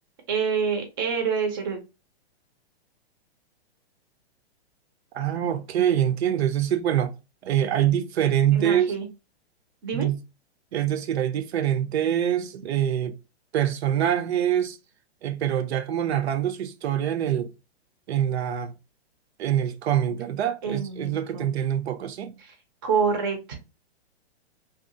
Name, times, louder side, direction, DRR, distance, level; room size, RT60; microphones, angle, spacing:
voice 1, 0.3-1.8 8.5-9.1 9.8-10.1 20.6-21.5 22.4-22.5 22.8-23.5, right 6 dB, 20° right, 0.4 m, -27 dB
voice 2, 5.1-7.1 7.4-8.9 9.9-10.2 10.7-13.2 13.5-14.8 15.2-17.5 18.1-18.7 19.4-22.3, right 10 dB, 80° right, 0.5 m, -25 dB
2.7 x 2.3 x 2.5 m
hypercardioid pair, 160°, 32 cm